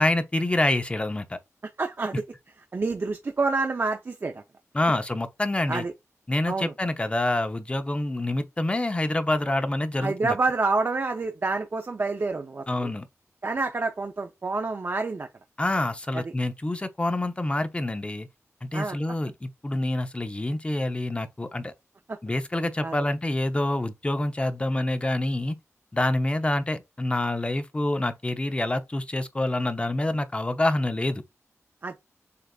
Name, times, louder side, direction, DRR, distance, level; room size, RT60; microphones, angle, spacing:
voice 1, 0.0-1.4 4.7-5.8 6.3-10.4 12.7-13.1 15.6-18.3 18.6-21.7 22.2-25.6 25.9-31.2, left 1 dB, 20° left, 0.6 m, -27 dB
voice 2, 1.8-2.2 2.7-4.4 5.7-5.9 6.5-6.7 10.0-12.9 13.4-15.3 16.1-16.2 18.7-19.0 22.1-22.2 22.8-22.9 31.8-32.0, right 3 dB, 45° right, 0.5 m, -28 dB
6.5 x 2.4 x 2.3 m
wide cardioid pair, 80°, 5 cm